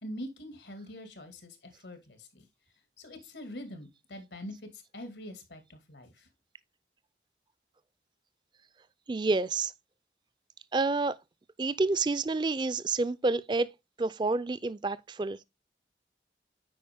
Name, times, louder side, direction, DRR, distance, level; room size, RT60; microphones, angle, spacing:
voice 1, 0.0-2.4 3.0-6.3, left 1 dB, 85° left, 2.1 m, -44 dB
voice 2, 9.1-9.7 10.7-11.1 11.6-13.7 14.0-15.4, right 3 dB, 25° right, 0.4 m, -28 dB
8.6 x 5.1 x 3.5 m
head